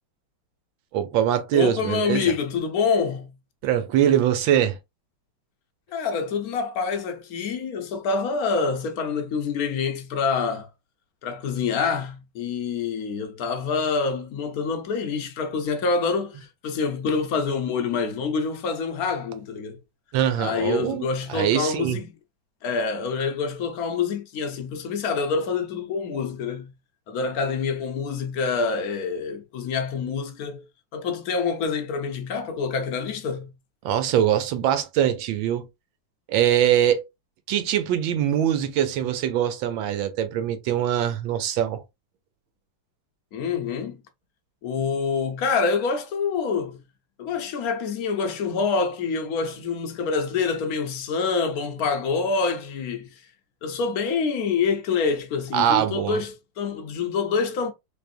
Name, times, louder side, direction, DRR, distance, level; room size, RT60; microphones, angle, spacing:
voice 1, 0.9-2.3 3.6-4.8 20.1-22.0 33.8-35.7 36.3-37.0 37.5-41.8 55.5-56.2, right 10 dB, 80° right, 1.4 m, -23 dB
voice 2, 1.5-3.3 5.9-10.7 11.2-19.8 20.4-22.1 22.6-26.7 27.1-30.6 30.9-33.5 43.3-44.0 44.6-46.8 47.2-53.1 53.6-57.7, left 5 dB, 65° left, 0.9 m, -26 dB
3.4 x 3.3 x 2.5 m
omnidirectional pair, 2.1 m